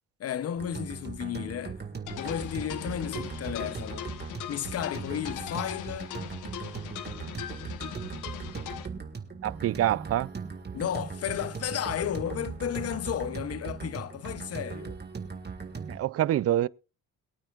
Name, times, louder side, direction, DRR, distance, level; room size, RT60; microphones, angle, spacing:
voice 1, 0.2-1.8 2.1-4.1 4.5-6.1 10.7-15.0, left 10 dB, 55° left, 0.8 m, -33 dB
sound 1, 0.6-16.0, right 5 dB, 35° right, 1.9 m, -39 dB
sound 2, 2.1-8.9, left 10 dB, 85° left, 1.1 m, -40 dB
voice 2, 9.4-10.3 15.9-16.7, right 12 dB, 50° right, 0.5 m, -26 dB
22.5 x 9.1 x 2.4 m
cardioid pair, 90°, 30 cm